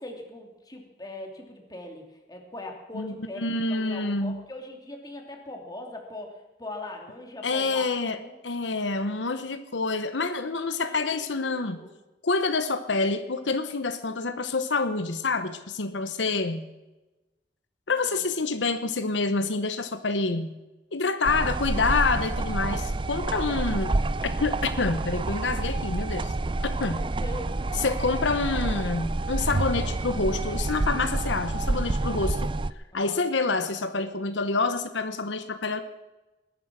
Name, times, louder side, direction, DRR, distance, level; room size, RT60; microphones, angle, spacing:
voice 1, 0.0-6.3 6.6-7.9 8.1-8.4 8.9-9.1 10.4-11.9 17.9-18.2 26.9-27.9 32.9-33.3, left 2 dB, 20° left, 2 dB, 2.8 m, -41 dB
voice 2, 2.9-4.4 7.4-11.8 12.2-16.7 17.9-20.6 20.9-26.3 26.6-27.1 27.8-32.5 32.9-35.8, left 3 dB, 90° left, 10 dB, 1.0 m, -27 dB
sound 1, 21.2-32.7, right 2 dB, 30° right, 0.5 m, -28 dB
20.0 x 11.0 x 6.3 m, 1.1 s
head